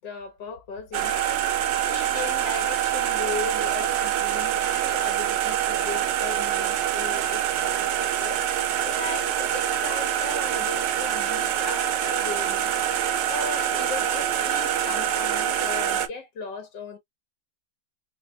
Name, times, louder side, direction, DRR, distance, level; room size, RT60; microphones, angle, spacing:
voice 1, 0.0-8.4 8.8-12.8 13.3-17.0, left 5 dB, 70° left, 1.7 m, -37 dB
sound 1, 0.9-16.1, right 10 dB, 70° right, 1.0 m, -25 dB
5.7 x 2.2 x 2.2 m
omnidirectional pair, 2.1 m